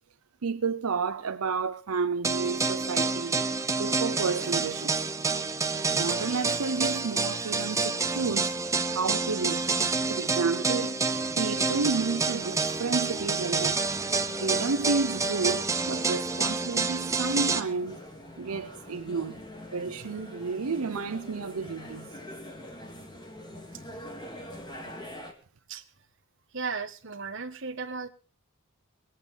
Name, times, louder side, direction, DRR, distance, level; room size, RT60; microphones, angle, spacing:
voice 1, 0.4-3.4 3.8-5.1 5.9-8.6 8.9-9.7 10.1-11.0 11.4-13.8 14.4-18.0 18.4-19.4 19.7-22.1 23.9-24.0, right 4 dB, 80° right, 0.7 m, -31 dB
sound 1, 2.2-17.6, right 4 dB, 15° right, 0.6 m, -28 dB
sound 2, 11.1-25.3, left 1 dB, 20° left, 2.1 m, -45 dB
voice 2, 26.5-28.1, right 4 dB, 55° right, 1.4 m, -35 dB
21.0 x 8.5 x 5.5 m
head